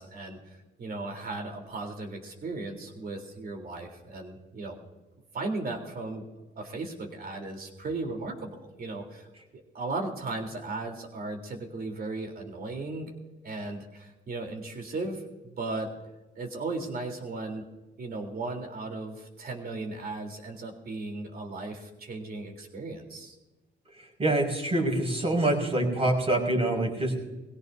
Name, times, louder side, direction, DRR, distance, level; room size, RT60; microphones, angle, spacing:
voice 1, 0.0-4.8 5.3-6.3 6.6-9.3 9.5-13.1 13.4-15.9 16.4-17.7 18.0-23.4, right 3 dB, 50° right, 3 dB, 3.8 m, -36 dB
voice 2, 23.9-27.2, right 1 dB, 30° right, 0 dB, 5.8 m, -26 dB
22.5 x 17.0 x 2.8 m, 1.1 s
cardioid pair, 90°, 20 cm